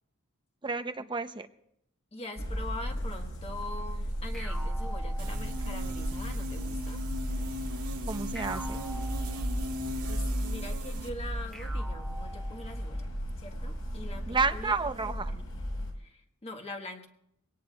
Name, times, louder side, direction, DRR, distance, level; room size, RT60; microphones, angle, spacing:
voice 1, 0.6-1.5 8.1-8.8 14.3-15.3, right 4 dB, 20° right, 10 dB, 0.7 m, -31 dB
voice 2, 2.1-7.0 10.1-13.1 13.4-15.4 16.0-17.1, left 2 dB, 30° left, 3 dB, 1.4 m, -43 dB
sound 1, 2.4-15.9, equal, 70° left, 4.6 m, -35 dB
sound 2, 4.3-6.0 8.3-9.9 11.5-13.0, right 1 dB, ahead, 0.9 m, -46 dB
sound 3, 5.2-11.1, right 1 dB, 90° right, 1.9 m, -39 dB
23.5 x 18.0 x 2.3 m, 0.76 s
head